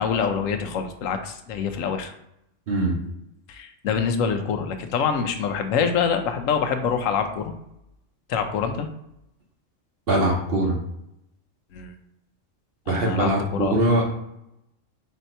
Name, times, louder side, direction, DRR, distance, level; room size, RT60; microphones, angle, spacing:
voice 1, 0.0-2.1 3.5-7.5 8.3-8.9 11.7-11.9 12.9-13.8, left 6 dB, 80° left, 7 dB, 1.0 m, -25 dB
voice 2, 2.7-3.0 10.1-10.8 12.9-14.0, right 1 dB, 50° right, 0 dB, 1.0 m, -22 dB
4.1 x 2.7 x 4.4 m, 0.81 s
omnidirectional pair, 1.3 m